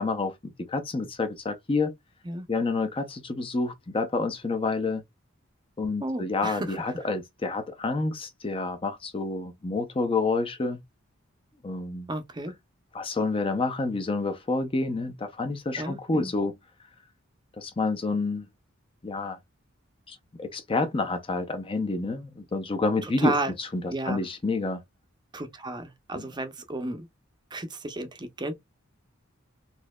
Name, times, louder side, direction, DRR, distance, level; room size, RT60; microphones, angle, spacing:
voice 1, 0.0-1.9 2.5-5.0 5.8-10.8 11.6-12.1 12.9-16.5 17.6-18.5 19.0-19.4 20.1-24.8 26.1-26.2, left 3 dB, 25° left, 0.5 m, -29 dB
voice 2, 6.0-6.8 12.1-12.5 15.8-16.3 23.2-23.5 23.9-24.2 25.3-27.1 27.5-28.5, right 2 dB, 20° right, 0.6 m, -32 dB
4.2 x 2.7 x 2.2 m
head